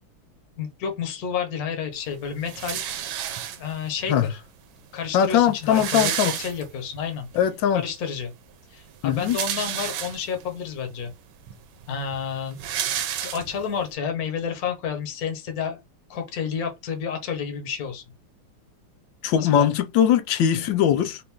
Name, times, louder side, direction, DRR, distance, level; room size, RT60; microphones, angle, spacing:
voice 1, 0.6-2.9 3.5-4.4 4.9-7.3 7.7-8.3 8.7-11.1 11.9-12.6 13.2-15.8 16.1-18.0 19.3-19.7, left 7 dB, 50° left, 1.4 m, -30 dB
sound 1, 2.5-3.9 4.8-4.9 5.1-5.2 5.4-7.0 7.4-7.5 8.9-10.5 11.1-11.2 11.5-13.8, right 10 dB, 75° right, 1.4 m, -31 dB
voice 2, 5.1-6.3 7.3-7.8 9.0-9.4 19.2-21.2, left 9 dB, 70° left, 1.2 m, -20 dB
4.3 x 2.5 x 3.6 m
omnidirectional pair, 2.4 m